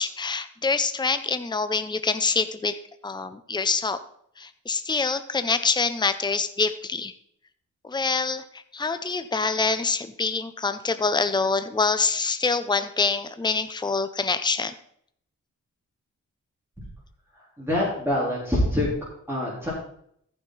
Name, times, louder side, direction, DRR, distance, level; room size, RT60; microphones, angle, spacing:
voice 1, 0.0-2.8 3.0-4.0 4.4-7.1 7.8-14.7, left 4 dB, 15° left, 11 dB, 0.7 m, -25 dB
voice 2, 17.6-18.9 19.3-19.7, left 1 dB, 5° right, -7 dB, 3.9 m, -25 dB
14.5 x 5.8 x 4.1 m, 0.68 s
cardioid pair, 60°, 32 cm